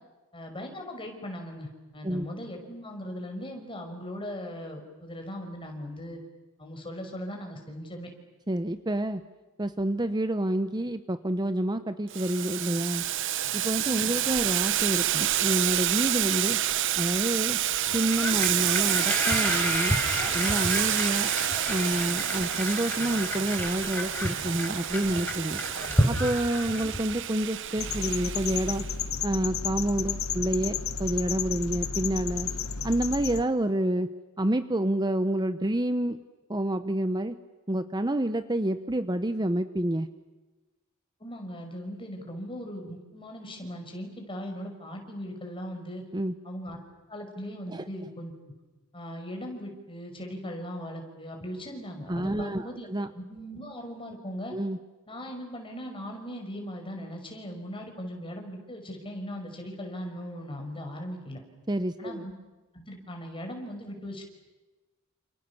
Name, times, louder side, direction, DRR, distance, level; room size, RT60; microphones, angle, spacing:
voice 1, 0.3-6.2 6.6-8.1 13.9-14.2 41.2-46.0 46.4-46.8 47.1-48.3 48.9-54.6 55.1-61.4 62.0-62.3 62.7-64.2, equal, 25° left, 3 dB, 5.7 m, -39 dB
voice 2, 8.5-9.2 9.6-13.0 13.5-16.6 17.0-17.6 17.9-20.0 20.3-21.3 21.7-25.6 26.1-28.9 29.2-32.5 32.8-34.1 34.4-36.2 36.5-37.4 37.7-40.1 46.1-46.3 47.7-47.8 52.1-53.1 54.5-54.8 61.7-62.2, right 1 dB, 20° right, 10 dB, 0.9 m, -28 dB
Boiling, 12.1-28.9, right 12 dB, 60° right, 0.8 m, -29 dB
sound 1, 17.9-27.2, left 1 dB, 10° left, 5.3 m, -31 dB
sound 2, 27.8-33.4, left 6 dB, 70° left, 1.3 m, -32 dB
29.5 x 28.0 x 7.1 m, 1.2 s
head